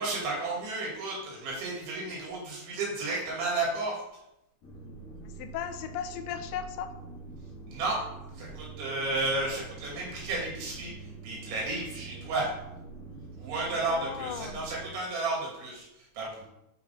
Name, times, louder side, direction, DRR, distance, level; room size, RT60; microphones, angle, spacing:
voice 1, 0.0-4.0 7.7-8.1 8.3-12.5 13.4-16.5, right 2 dB, 85° right, -4 dB, 5.1 m, -32 dB
sound 1, 4.6-14.9, right 3 dB, 40° left, 2.9 m, -45 dB
voice 2, 5.2-6.9 13.7-14.6, left 9 dB, 85° left, 8 dB, 3.0 m, -37 dB
9.3 x 5.9 x 4.2 m, 0.84 s
omnidirectional pair, 5.1 m